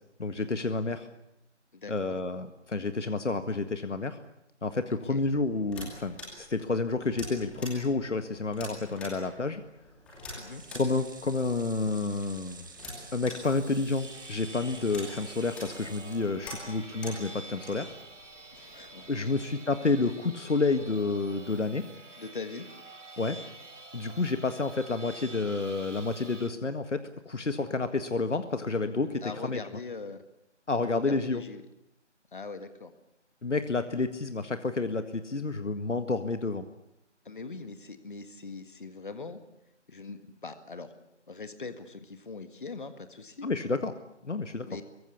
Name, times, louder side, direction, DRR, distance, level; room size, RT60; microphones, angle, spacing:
voice 1, 0.2-1.1 1.9-4.2 4.6-9.6 10.7-12.7 13.1-17.9 19.1-21.8 23.2-23.4 23.9-29.6 30.7-31.4 33.4-36.7 43.4-44.0 44.2-44.7, left 3 dB, 75° left, 9 dB, 1.9 m, -30 dB
voice 2, 1.7-2.2 5.1-5.2 10.4-10.6 18.5-19.3 22.2-22.7 29.2-30.2 30.8-31.6 32.3-32.9 37.3-39.4 39.9-40.9 41.3-43.5 44.7-44.8, left 4 dB, 45° left, 9 dB, 1.8 m, -41 dB
sound 1, 5.2-19.4, left 1 dB, 5° left, 2.5 m, -47 dB
sound 2, 10.5-16.8 17.2-17.3 17.6-17.7, right 4 dB, 15° right, 1.5 m, -50 dB
sound 3, 13.3-26.5, right 2 dB, 85° right, 2.6 m, -48 dB
24.5 x 23.5 x 8.5 m, 0.81 s
figure-of-eight pair, 170°, 36 cm